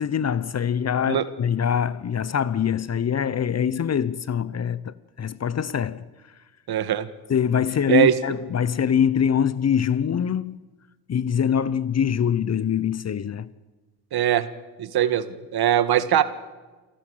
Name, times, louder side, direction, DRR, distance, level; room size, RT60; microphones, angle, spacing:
voice 1, 0.0-6.0 7.3-10.6 11.1-13.5, left 8 dB, 35° left, 0.9 m, -24 dB
voice 2, 6.7-7.1 7.9-8.1 14.1-14.5 14.8-15.2 15.5-16.2, right 11 dB, 55° right, 1.7 m, -20 dB
28.5 x 14.0 x 7.9 m
hypercardioid pair, 60°, 46 cm